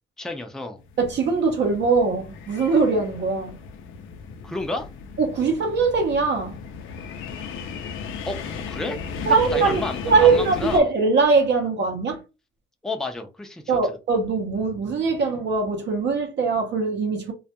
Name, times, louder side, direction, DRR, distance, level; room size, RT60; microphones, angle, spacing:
voice 1, 0.2-0.8 4.4-4.9 8.3-10.9 12.8-14.0, left 2 dB, 5° left, 0.4 m, -31 dB
sound 1, 0.8-10.8, left 6 dB, 80° left, 0.5 m, -36 dB
voice 2, 1.0-3.5 5.2-6.5 9.2-12.2 13.7-17.3, right 4 dB, 65° right, 0.7 m, -21 dB
2.3 x 2.1 x 2.8 m
cardioid pair, 90°, 20 cm